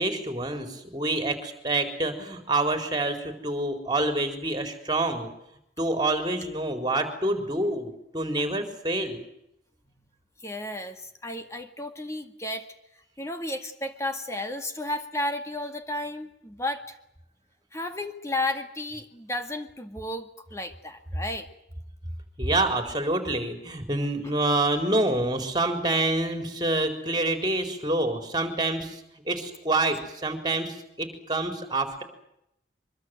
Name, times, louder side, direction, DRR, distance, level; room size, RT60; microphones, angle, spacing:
voice 1, 0.0-5.3 5.8-9.2 22.4-32.0, right 2 dB, 25° right, 6 dB, 4.3 m, -27 dB
voice 2, 10.4-12.7 13.2-17.0 17.7-21.5, left 1 dB, 15° left, 7 dB, 2.0 m, -33 dB
24.5 x 23.5 x 7.9 m, 0.78 s
head